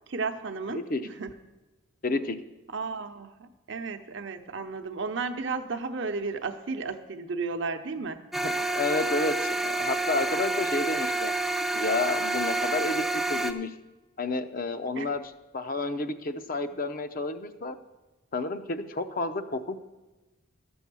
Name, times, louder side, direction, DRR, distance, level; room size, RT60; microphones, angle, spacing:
voice 1, 0.1-1.3 2.7-8.2 15.0-15.1, right 4 dB, 60° right, 7 dB, 0.8 m, -33 dB
voice 2, 0.7-1.0 2.0-2.4 8.4-11.3 11.7-13.0 13.3-13.7 14.2-15.2 15.5-17.8 18.3-19.7, left 3 dB, 40° left, 9 dB, 0.6 m, -30 dB
sound 1, 8.3-13.5, right 2 dB, ahead, 0.4 m, -28 dB
13.0 x 7.0 x 6.2 m, 1.2 s
head